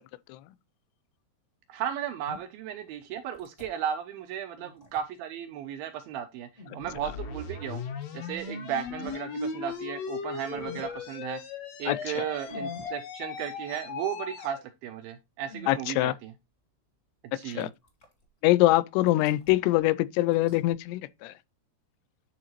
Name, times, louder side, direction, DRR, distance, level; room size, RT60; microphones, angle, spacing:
voice 1, 1.7-6.5 6.7-7.8 8.1-11.4 11.8-16.3 17.3-17.7, right 9 dB, 85° right, 2.1 m, -35 dB
sound 1, 2.3-2.4 3.3-3.7 4.6-5.0 6.6-7.0 8.3-8.4 8.8-9.2 9.7-9.8 10.5-11.0 12.5-12.9 13.4-13.5 15.4-15.8 17.5-18.2 19.1-19.8 20.3-20.7, left 3 dB, 50° left, 0.8 m, -45 dB
sound 2, 6.8-14.6, left 4 dB, 70° left, 1.5 m, -37 dB
voice 2, 11.9-12.3 15.7-16.1 17.5-17.7 18.4-21.3, left 17 dB, 90° left, 2.7 m, -24 dB
11.0 x 3.9 x 3.0 m
omnidirectional pair, 4.7 m